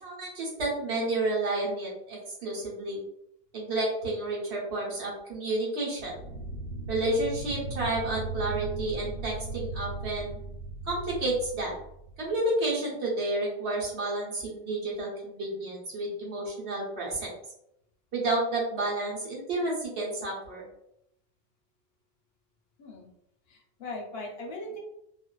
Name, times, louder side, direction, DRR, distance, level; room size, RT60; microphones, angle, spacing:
voice 1, 0.0-3.0 3.5-6.1 6.9-10.4 10.9-11.7 12.2-17.3 18.1-20.6, right 2 dB, 70° right, -3 dB, 1.1 m, -30 dB
sound 1, 6.0-12.4, right 3 dB, 90° right, 1.2 m, -38 dB
voice 2, 23.5-24.8, left 1 dB, 65° left, 0 dB, 0.8 m, -39 dB
2.4 x 2.4 x 2.2 m, 0.78 s
omnidirectional pair, 1.2 m